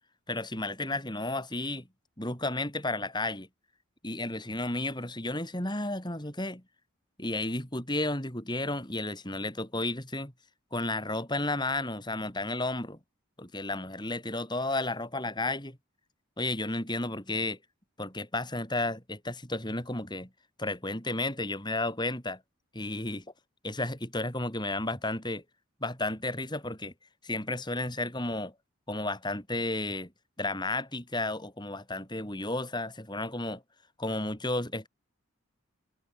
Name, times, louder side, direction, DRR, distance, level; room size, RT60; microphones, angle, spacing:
voice 1, 0.3-1.9 2.2-3.5 4.0-6.6 7.2-10.3 10.7-13.0 13.4-15.8 16.4-17.6 18.0-20.3 20.6-22.4 22.7-23.2 23.6-25.4 25.8-26.9 27.2-28.5 28.9-30.1 30.4-33.6 34.0-34.9, left 2 dB, 20° left, 6.6 m, -32 dB
head